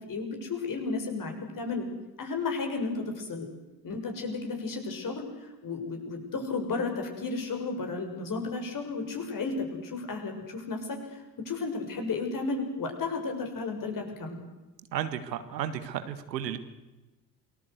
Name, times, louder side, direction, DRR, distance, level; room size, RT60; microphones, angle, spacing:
voice 1, 0.1-1.9 2.2-3.5 3.8-5.3 5.6-14.4, left 4 dB, 40° left, 4 dB, 7.0 m, -33 dB
voice 2, 14.9-16.6, right 10 dB, 75° right, 11 dB, 1.8 m, -33 dB
28.0 x 20.5 x 8.2 m, 1.1 s
figure-of-eight pair, 55°, 50 cm